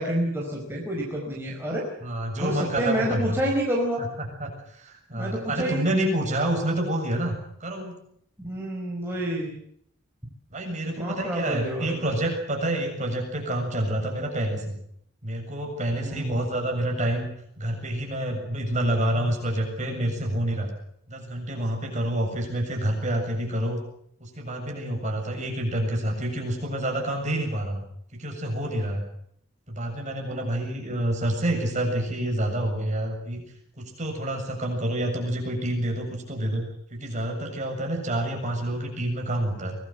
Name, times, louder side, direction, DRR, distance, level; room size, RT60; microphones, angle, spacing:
voice 1, 0.0-1.9 2.4-4.0 5.1-5.9 8.4-9.6 10.9-12.0 16.0-16.4 30.3-30.8, right 1 dB, 10° right, -2 dB, 4.8 m, -29 dB
voice 2, 2.0-3.4 4.2-8.0 10.5-14.8 15.2-17.3 17.6-20.7 21.1-23.8 24.2-27.8 28.1-29.0 29.7-33.4 33.8-36.6 36.9-39.8, right 1 dB, 35° right, 2 dB, 7.3 m, -28 dB
24.5 x 19.5 x 7.8 m, 0.70 s
head